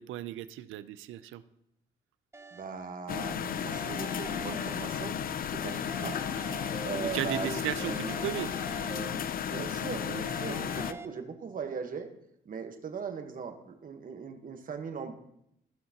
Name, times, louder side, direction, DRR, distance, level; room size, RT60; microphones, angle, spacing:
voice 1, 0.0-1.4 5.8-5.9 7.1-8.5 8.9-9.2, right 12 dB, 85° right, 14 dB, 0.5 m, -36 dB
sound 1, 2.3-2.9 3.4-5.3 5.6-7.4 7.8-9.6 10.0-11.1, right 3 dB, 15° right, 0.6 m, -45 dB
voice 2, 2.5-8.2 9.4-12.1 12.4-15.1, right 6 dB, 45° right, 6 dB, 1.2 m, -39 dB
sound 2, 3.1-10.9, left 8 dB, 45° left, 0.4 m, -34 dB
16.0 x 5.7 x 2.9 m, 0.77 s
cardioid pair, 90°, 20 cm